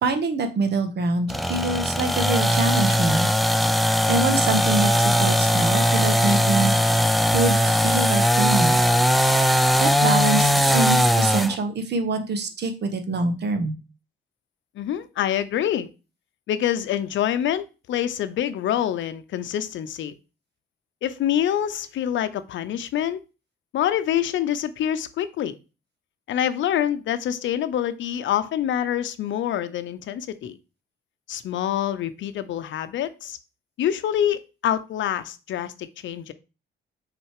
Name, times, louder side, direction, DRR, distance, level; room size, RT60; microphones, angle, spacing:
voice 1, 0.0-3.3 4.1-7.0 7.3-8.8 9.8-13.7, right 3 dB, 60° right, 1.4 m, -25 dB
sound 1, 1.3-11.6, equal, ahead, 0.5 m, -20 dB
voice 2, 14.8-15.9 16.5-20.1 21.0-23.2 23.7-25.5 26.3-30.6 31.3-33.4 33.8-36.3, left 10 dB, 70° left, 0.7 m, -26 dB
6.2 x 4.1 x 4.8 m
cardioid pair, 90°, 20 cm